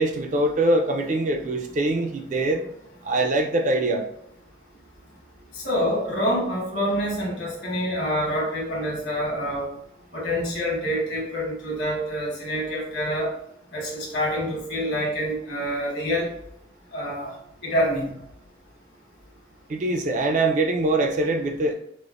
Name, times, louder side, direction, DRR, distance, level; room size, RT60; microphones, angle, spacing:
voice 1, 0.0-2.6 3.0-4.0 19.7-21.7, right 2 dB, 40° right, 4 dB, 0.3 m, -23 dB
voice 2, 5.5-9.7 10.1-13.3 13.7-16.3 16.9-17.3 17.6-18.1, equal, 65° left, -3 dB, 1.3 m, -26 dB
5.0 x 2.0 x 2.4 m, 0.75 s
head